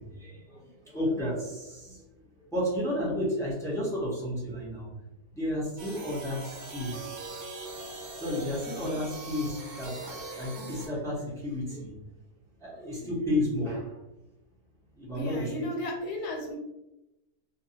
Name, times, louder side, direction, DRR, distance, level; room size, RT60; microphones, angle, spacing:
voice 1, 0.0-2.0 2.5-4.9 5.3-7.4 8.1-11.9 12.6-14.0 15.0-15.5, left 1 dB, 5° left, -7 dB, 0.4 m, -32 dB
sound 1, 5.8-10.9, right 2 dB, 60° right, 0.7 m, -42 dB
voice 2, 15.1-16.6, left 1 dB, 85° left, 1 dB, 1.2 m, -34 dB
2.4 x 2.4 x 2.7 m, 0.95 s
omnidirectional pair, 1.6 m